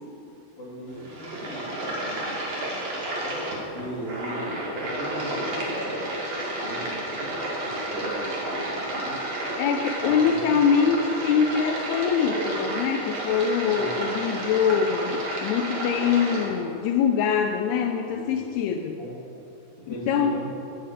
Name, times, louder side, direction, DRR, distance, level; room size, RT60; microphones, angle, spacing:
voice 1, 0.6-2.4 2.7-3.5 3.7-6.2 6.5-9.2 10.0-10.4 13.7-14.1 18.1-18.5 19.0-19.1 19.9-20.4, equal, 35° left, -6 dB, 3.8 m, -38 dB
sound 1, 0.9-16.5, right 1 dB, 45° right, 2.9 m, -31 dB
voice 2, 9.6-19.0 19.9-20.3, left 7 dB, 85° left, 5 dB, 2.6 m, -24 dB
16.0 x 11.0 x 4.9 m, 2.7 s
omnidirectional pair, 4.8 m